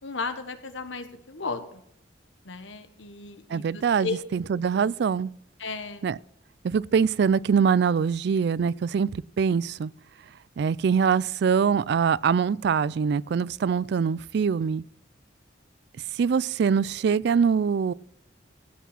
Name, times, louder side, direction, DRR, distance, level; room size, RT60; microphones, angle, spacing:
voice 1, 0.0-1.8 2.4-4.2 4.6-4.7 5.6-6.1, left 4 dB, 90° left, 1.2 m, -35 dB
voice 2, 3.5-5.3 6.0-6.2 6.6-9.1 9.4-9.9 10.6-14.8 16.2-17.9, right 6 dB, 60° right, 0.3 m, -23 dB
15.5 x 5.9 x 5.7 m
head